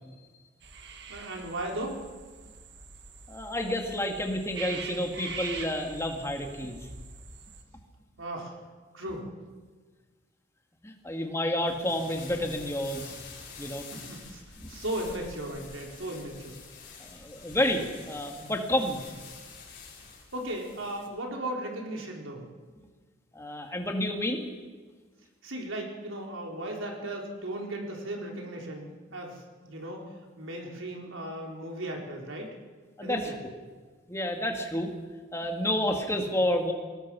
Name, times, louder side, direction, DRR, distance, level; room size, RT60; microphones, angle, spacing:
sound 1, 0.6-7.6, right 5 dB, 55° right, 1.9 m, -43 dB
voice 1, 1.1-2.0 8.2-8.6 8.9-9.3 13.6-14.4 14.7-16.6 20.0-20.1 20.3-22.4 25.4-32.5 33.0-33.3, right 1 dB, 80° right, 0 dB, 3.9 m, -36 dB
voice 2, 3.3-6.9 10.8-13.1 13.6-13.9 14.6-14.7 17.0-19.0 23.3-24.5 33.0-33.3 34.1-34.9 35.3-36.7, left 1 dB, 15° left, 2 dB, 2.2 m, -30 dB
sound 2, 11.6-21.1, left 5 dB, 55° left, 6.1 m, -47 dB
22.5 x 19.5 x 6.3 m, 1.4 s
head